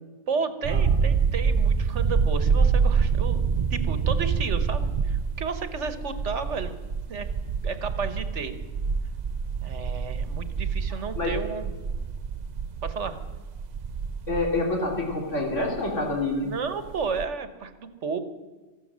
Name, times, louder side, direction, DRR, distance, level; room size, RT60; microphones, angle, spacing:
voice 1, 0.3-3.4 3.7-6.8 7.1-7.3 7.6-8.6 9.6-11.7 12.8-13.2 16.4-18.2, right 5 dB, 70° right, 11 dB, 1.4 m, -32 dB
sound 1, 0.6-16.4 16.7-17.3, right 5 dB, 50° right, 0.5 m, -26 dB
voice 2, 14.3-16.5, left 2 dB, 75° left, 0 dB, 3.3 m, -27 dB
14.5 x 12.5 x 7.4 m, 1.3 s
omnidirectional pair, 1.3 m